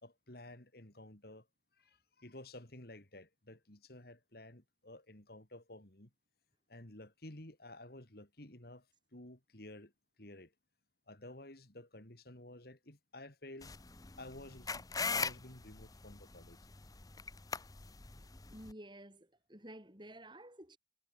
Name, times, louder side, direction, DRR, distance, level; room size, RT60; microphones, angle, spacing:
voice 1, 0.0-1.5 1.8-6.1 6.7-8.9 9.1-9.9 10.2-10.5 11.1-13.7 14.2-16.6, left 1 dB, 55° left, 3.3 m, -53 dB
sound 1, 13.6-18.7, left 4 dB, 20° left, 0.7 m, -41 dB
voice 2, 18.5-20.8, right 1 dB, 25° right, 6.3 m, -52 dB
head